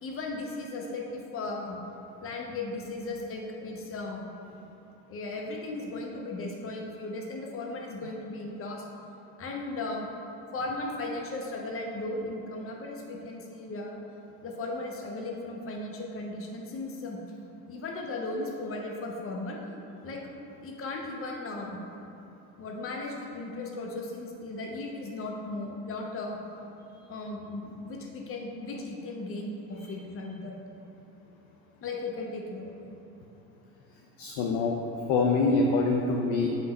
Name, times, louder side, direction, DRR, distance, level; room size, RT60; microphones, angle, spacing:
voice 1, 0.0-1.8 2.2-4.3 5.1-8.8 9.4-10.1 10.5-14.0 14.4-17.2 17.7-19.6 20.0-20.2 20.6-21.8 22.6-26.4 27.1-30.5 31.8-33.0, left 2 dB, 25° left, 0 dB, 1.1 m, -36 dB
voice 2, 34.2-36.6, left 3 dB, 45° left, 1 dB, 0.6 m, -26 dB
7.3 x 5.4 x 3.3 m, 2.9 s
figure-of-eight pair, 70°, 49 cm